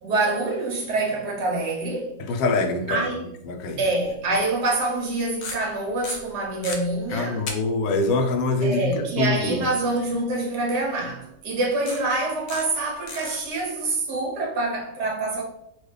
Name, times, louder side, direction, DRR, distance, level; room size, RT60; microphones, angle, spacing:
voice 1, 0.0-2.2 2.9-3.2 3.8-7.4 8.6-15.4, right 2 dB, 70° right, 1.5 m, -26 dB
voice 2, 2.2-3.8 7.1-9.7, left 3 dB, 85° left, 1.3 m, -25 dB
sound 1, 4.1-4.2 5.3-5.7 6.0-6.8 7.5-7.6 7.9-8.0 10.9-11.0 11.9-12.1 12.5-12.8 13.1-13.3, left 4 dB, 65° left, 0.6 m, -34 dB
4.4 x 2.3 x 3.2 m
omnidirectional pair, 1.8 m